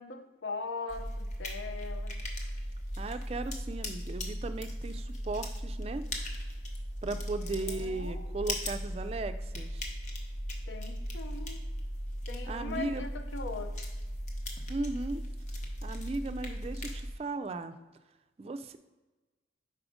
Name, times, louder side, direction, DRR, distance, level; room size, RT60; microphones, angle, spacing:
voice 1, 0.0-2.2 7.4-8.4 10.7-11.6 12.3-13.8, left 4 dB, 90° left, 7 dB, 0.6 m, -40 dB
sound 1, 0.9-17.1, equal, 40° left, 0.8 m, -37 dB
voice 2, 3.0-6.1 7.0-9.9 12.5-13.0 14.7-15.2 15.8-17.7 18.4-18.8, right 3 dB, 35° right, 10 dB, 0.3 m, -37 dB
5.0 x 4.2 x 4.9 m, 1.2 s
head